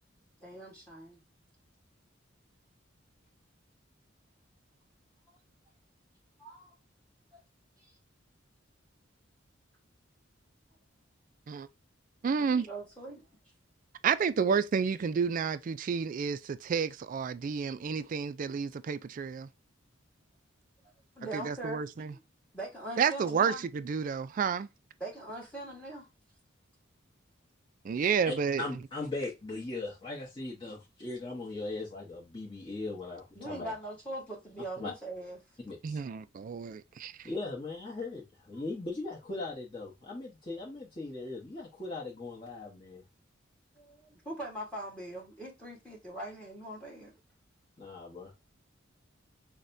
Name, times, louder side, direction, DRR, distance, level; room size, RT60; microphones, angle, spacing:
voice 1, 0.4-1.2 6.4-6.7 7.3-7.4 7.8-7.9 12.4-13.2 21.1-22.0 22.5-23.6 25.0-26.1 33.3-35.4 38.5-38.6 43.8-47.1, right 1 dB, 5° left, 1.2 m, -41 dB
voice 2, 12.2-12.7 14.0-19.5 21.3-22.1 23.0-24.7 27.8-28.6 35.8-37.3, right 6 dB, 45° right, 0.3 m, -30 dB
voice 3, 28.0-33.7 34.8-34.9 35.6-36.0 37.2-43.0 47.8-48.3, left 2 dB, 25° left, 1.1 m, -39 dB
6.2 x 2.2 x 2.6 m
head